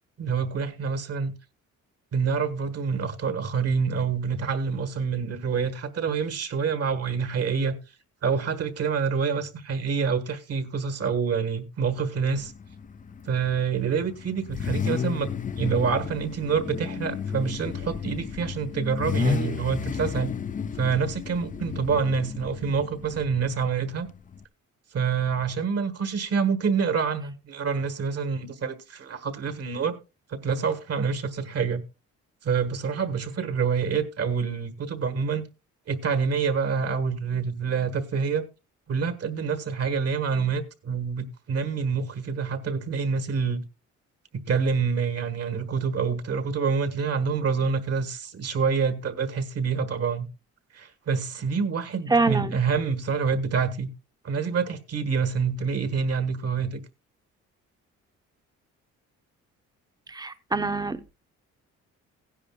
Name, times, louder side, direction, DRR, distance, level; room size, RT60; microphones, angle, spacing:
voice 1, 0.2-1.3 2.1-7.8 8.2-12.5 13.3-20.3 20.8-24.1 24.9-29.9 30.3-31.8 32.4-35.5 35.9-38.4 38.9-43.6 44.3-50.3 50.7-53.9 54.2-56.8, right 6 dB, 55° right, 1.5 m, -27 dB
Car / Idling / Accelerating revving vroom, 12.4-24.4, left 6 dB, 25° left, 0.5 m, -33 dB
voice 2, 52.1-52.5 60.1-61.1, right 3 dB, 15° right, 0.9 m, -25 dB
16.0 x 10.0 x 2.3 m
cardioid pair, 90°, 30 cm